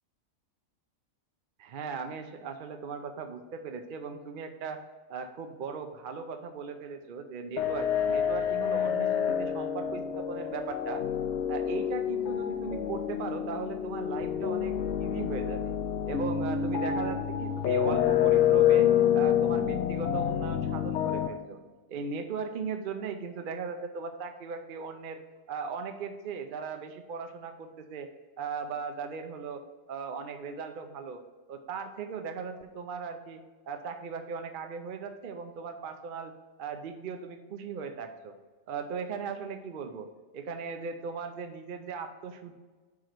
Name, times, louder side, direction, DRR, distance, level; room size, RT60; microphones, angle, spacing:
voice 1, 1.6-4.8 5.1-11.0 11.5-14.7 15.0-15.7 16.1-18.9 19.1-21.6 21.9-25.2 25.5-28.1 28.4-29.6 29.9-31.2 31.5-33.4 33.7-36.3 36.6-38.3 38.7-40.1 40.3-42.5, right 5 dB, 60° right, 6 dB, 0.5 m, -38 dB
sound 1, 7.6-21.3, left 9 dB, 65° left, 0.8 m, -27 dB
5.1 x 4.8 x 5.9 m, 1.3 s
omnidirectional pair, 1.4 m